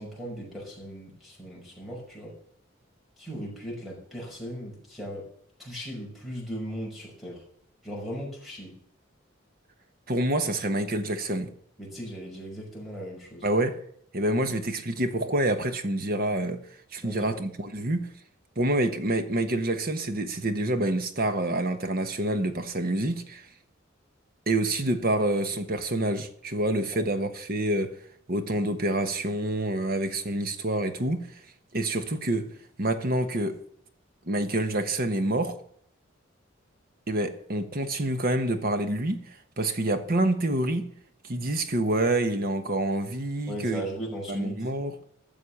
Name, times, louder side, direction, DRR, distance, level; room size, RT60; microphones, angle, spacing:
voice 1, 0.0-2.4 3.2-5.3 5.6-7.4 7.8-8.8 11.8-13.5 17.0-17.4 26.9-27.0 43.5-44.7, equal, ahead, 5.6 m, -38 dB
voice 2, 10.1-11.5 13.4-13.8 14.1-16.6 16.9-18.1 18.6-23.5 24.5-28.0 28.3-31.3 31.7-32.5 32.8-33.6 34.2-35.6 37.1-40.9 41.2-43.8 44.3-45.0, right 1 dB, 50° right, 1.2 m, -27 dB
13.0 x 7.1 x 7.1 m
head